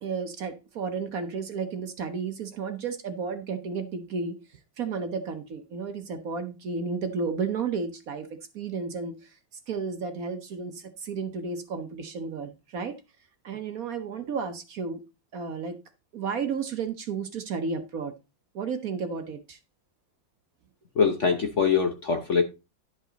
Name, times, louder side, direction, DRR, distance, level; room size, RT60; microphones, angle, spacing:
voice 1, 0.0-4.4 4.8-8.3 8.5-9.4 9.7-12.9 13.4-15.0 15.3-15.8 16.1-18.1 18.5-19.6, right 5 dB, 55° right, 1.2 m, -32 dB
voice 2, 21.0-22.4, left 6 dB, 50° left, 1.0 m, -23 dB
11.0 x 5.4 x 3.9 m
omnidirectional pair, 2.0 m